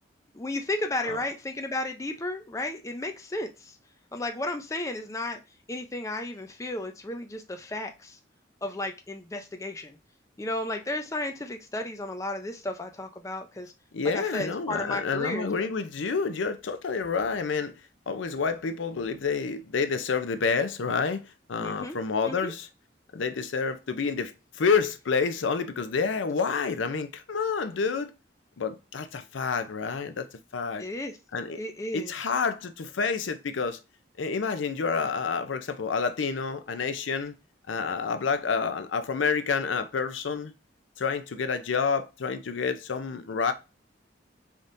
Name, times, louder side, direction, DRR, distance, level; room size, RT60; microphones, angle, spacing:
voice 1, 0.3-3.7 4.1-5.4 5.7-8.2 8.6-10.0 10.4-13.7 14.1-15.5 21.6-22.0 22.2-22.5 30.8-31.1 31.6-32.1, left 2 dB, 15° left, 0.4 m, -33 dB
voice 2, 13.9-17.7 18.1-21.2 21.5-22.7 23.1-28.1 28.6-30.3 30.5-30.8 31.3-31.6 31.9-33.8 34.2-37.3 37.7-40.5 41.0-43.5, left 5 dB, 85° left, 0.5 m, -28 dB
4.0 x 3.5 x 2.6 m
head